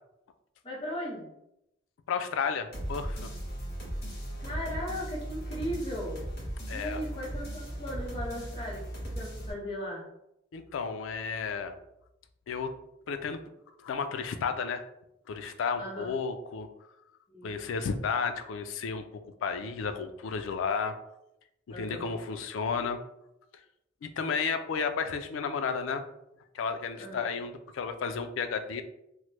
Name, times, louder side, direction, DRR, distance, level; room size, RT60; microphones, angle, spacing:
voice 1, 0.6-1.3 4.4-6.3 6.7-8.9 9.1-10.0 15.8-16.1 17.3-17.6 21.7-22.1 27.0-27.2, equal, 25° left, -4 dB, 0.8 m, -37 dB
voice 2, 2.1-3.3 6.7-7.0 10.5-11.8 12.5-12.7 13.1-13.4 13.8-14.8 15.3-16.7 17.4-19.1 19.4-20.9 21.7-23.0 24.0-26.0 26.5-28.8, left 5 dB, 85° left, 9 dB, 0.3 m, -32 dB
sound 1, 2.7-9.5, right 1 dB, 55° left, 1.2 m, -37 dB
3.1 x 2.1 x 3.0 m, 0.83 s
head